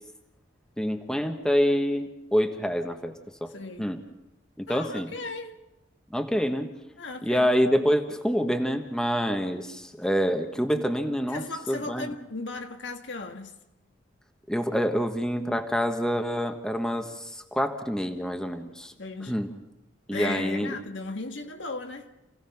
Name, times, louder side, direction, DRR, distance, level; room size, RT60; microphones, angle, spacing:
voice 1, 0.8-3.1 3.4-3.5 3.8-4.0 4.6-5.1 6.1-6.7 7.2-12.1 14.5-18.9 19.3-19.5 20.1-20.7, equal, 5° left, 1.2 m, -26 dB
voice 2, 3.5-3.9 4.7-5.6 7.0-7.5 11.3-13.5 19.0-19.5 20.1-22.1, left 3 dB, 75° left, 1.6 m, -36 dB
28.5 x 17.0 x 5.8 m
head